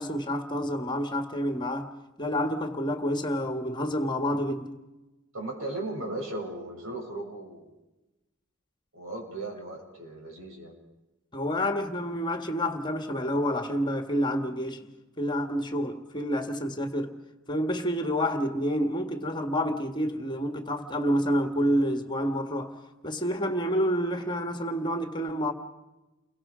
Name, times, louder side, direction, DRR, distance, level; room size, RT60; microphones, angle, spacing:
voice 1, 0.0-1.9 2.2-4.7 11.3-14.9 15.2-17.1 17.5-22.8 23.0-25.5, equal, 20° left, 1.8 m, -28 dB
voice 2, 5.3-7.8 8.9-10.7, right 2 dB, 75° right, 7.1 m, -37 dB
30.0 x 23.0 x 5.1 m
head